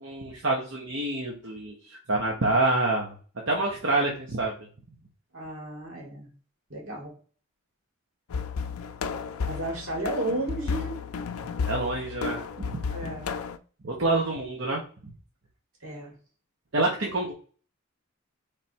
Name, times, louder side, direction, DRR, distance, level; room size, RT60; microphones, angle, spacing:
voice 1, 0.0-1.7 2.1-4.5 11.7-12.8 13.8-14.8 16.7-17.3, right 2 dB, 60° right, -2 dB, 0.9 m, -27 dB
voice 2, 5.3-6.3 6.7-7.1 9.4-11.0 12.9-13.4 15.8-16.1, right 1 dB, 80° right, -2 dB, 2.2 m, -33 dB
sound 1, 8.3-13.6, left 5 dB, 85° left, 0.4 m, -33 dB
3.4 x 3.2 x 4.2 m, 0.40 s
head